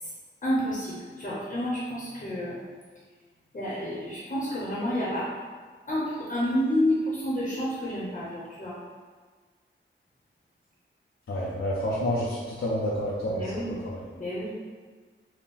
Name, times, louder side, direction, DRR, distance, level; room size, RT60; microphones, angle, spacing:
voice 1, 0.4-2.6 3.5-5.3 5.9-8.8 13.2-13.7 14.1-14.5, equal, 40° left, -7 dB, 0.9 m, -29 dB
voice 2, 11.3-14.0, equal, 75° left, -7 dB, 0.7 m, -29 dB
4.2 x 2.2 x 3.6 m, 1.5 s
wide cardioid pair, 95°, 21 cm